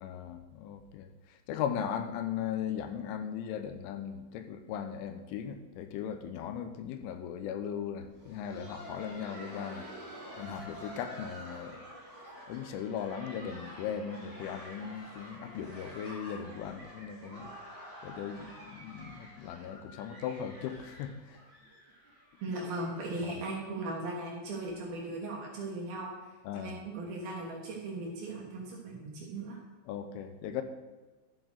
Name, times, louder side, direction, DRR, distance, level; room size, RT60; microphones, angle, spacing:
voice 1, 0.0-9.9 10.4-11.8 12.5-17.5 18.0-21.4 23.2-23.3 26.4-26.8 29.9-30.6, left 8 dB, 90° left, 8 dB, 3.2 m, -38 dB
Laughter, 8.0-23.7 24.0-24.1 24.7-24.8 25.3-25.5 26.6-26.7, equal, 5° left, 2.6 m, -49 dB
voice 2, 22.4-26.2 26.6-29.6, right 2 dB, 65° right, -2 dB, 2.8 m, -38 dB
12.5 x 7.0 x 3.9 m, 1.3 s
omnidirectional pair, 5.5 m